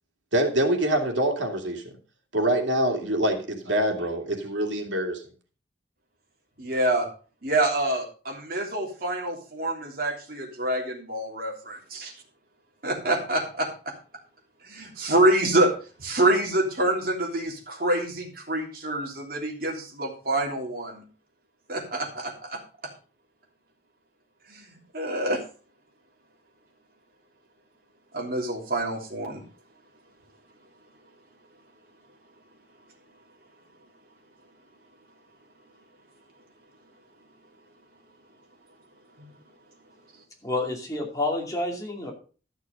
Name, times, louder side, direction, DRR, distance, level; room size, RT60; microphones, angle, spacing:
voice 1, 0.3-1.8 2.3-5.2, right 1 dB, 90° right, 3 dB, 2.5 m, -25 dB
voice 2, 6.6-7.1 7.4-12.1 12.8-13.9 14.6-15.7 16.0-21.0 21.7-22.6 24.5-24.6 24.9-25.4 28.1-29.4 39.2-39.3, right 1 dB, 50° right, 0 dB, 3.2 m, -26 dB
voice 3, 40.4-42.1, left 2 dB, 20° left, 0 dB, 2.7 m, -29 dB
13.0 x 6.5 x 5.3 m, 0.38 s
head